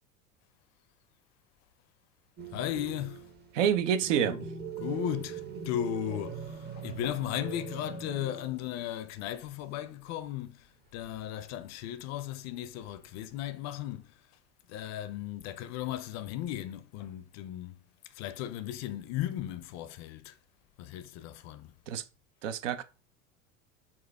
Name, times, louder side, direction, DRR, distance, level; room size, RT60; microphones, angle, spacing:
sound 1, 2.4-8.9 9.2-9.3 11.0-11.6 12.7-13.4, right 6 dB, 25° right, 0.8 m, -42 dB
voice 1, 2.5-3.3 4.3-4.5 4.8-14.1 14.7-17.8 18.1-20.3 20.8-21.7, left 12 dB, 40° left, 0.5 m, -36 dB
voice 2, 3.5-4.4 21.9-22.0 22.4-22.8, right 9 dB, 65° right, 0.6 m, -27 dB
4.3 x 2.4 x 4.6 m
hypercardioid pair, 80°, 40 cm